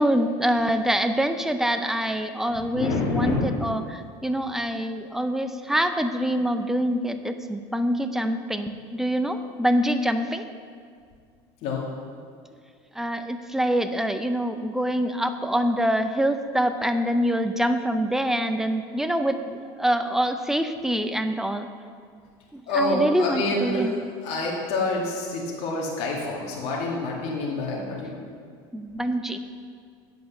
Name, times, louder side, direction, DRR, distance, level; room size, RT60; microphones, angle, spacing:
voice 1, 0.0-10.4 13.0-21.7 22.5-23.9 28.7-29.4, equal, 5° right, 8 dB, 0.5 m, -25 dB
voice 2, 2.5-3.5 11.6-11.8 22.7-24.0 24.2-28.3, left 2 dB, 60° left, -3 dB, 2.1 m, -27 dB
8.6 x 5.3 x 6.9 m, 2.1 s
supercardioid pair, 110°, 12 cm